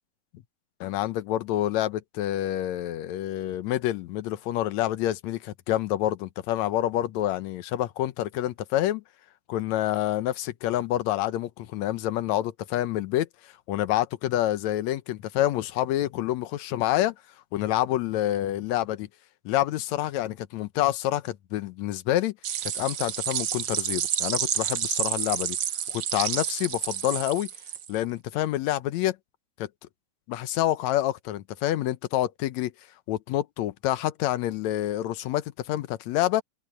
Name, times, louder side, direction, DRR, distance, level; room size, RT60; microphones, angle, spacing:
voice 1, 0.8-9.0 9.5-17.1 17.5-19.1 19.5-22.4 22.7-25.6 25.9-27.5 27.9-29.2 29.6-29.7 30.3-32.7 33.1-36.4, left 13 dB, 75° left, 2.1 m, -27 dB
sound 1, 22.4-28.0, right 10 dB, 85° right, 1.0 m, -29 dB
omnidirectional pair, 3.3 m